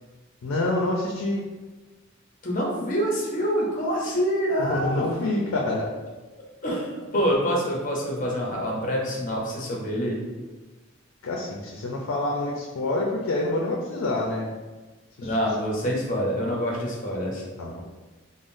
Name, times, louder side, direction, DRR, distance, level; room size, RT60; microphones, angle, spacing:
voice 1, 0.4-1.4 4.6-5.9 11.2-14.5 15.2-15.3 17.6-17.8, left 2 dB, 85° left, -1 dB, 0.4 m, -27 dB
voice 2, 2.4-5.1 6.6-10.2 15.2-17.4, equal, 40° left, -2 dB, 0.6 m, -26 dB
3.4 x 2.0 x 2.5 m, 1.2 s
head